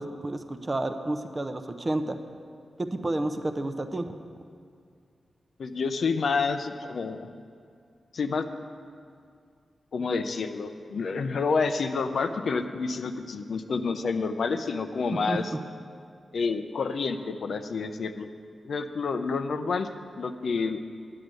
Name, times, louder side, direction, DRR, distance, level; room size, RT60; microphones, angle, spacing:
voice 1, 0.0-2.2 2.8-4.2 15.1-15.6, right 2 dB, 25° right, 7 dB, 0.6 m, -30 dB
voice 2, 5.6-7.3 8.1-8.5 9.9-15.5 16.3-18.3 18.6-19.9 20.2-20.8, left 4 dB, 70° left, 8 dB, 0.6 m, -29 dB
9.6 x 6.6 x 8.9 m, 2.2 s
wide cardioid pair, 115°, 0 cm